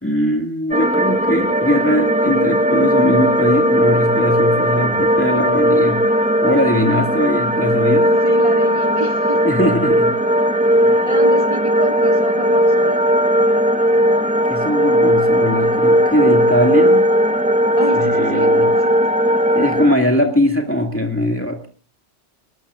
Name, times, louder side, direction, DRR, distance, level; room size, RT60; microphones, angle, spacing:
voice 1, 0.0-6.2 6.4-8.1 9.3-10.1 10.8-11.0 14.5-17.1 17.9-18.8 19.5-21.7, left 1 dB, 10° left, 2 dB, 2.2 m, -20 dB
sound 1, 0.7-20.0, equal, 10° right, 0.7 m, -16 dB
voice 2, 8.2-9.4 11.0-13.0 17.8-19.0, right 1 dB, 25° right, 3 dB, 2.9 m, -29 dB
27.0 x 20.0 x 2.5 m, 0.39 s
omnidirectional pair, 1.2 m